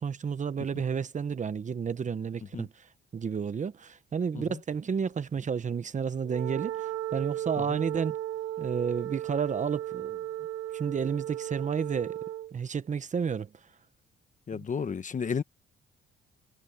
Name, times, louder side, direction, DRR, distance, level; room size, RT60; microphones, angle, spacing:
voice 1, 0.0-8.2 8.6-10.2 10.7-12.2 12.5-13.5 14.5-14.6, right 6 dB, 40° right, 1.0 m, -31 dB
Wind instrument woodwind instrument, 6.2-12.5, right 12 dB, 80° right, 2.3 m, -35 dB
voice 2, 14.5-15.4, left 6 dB, 40° left, 1.3 m, -32 dB
cardioid pair, 90°, 20 cm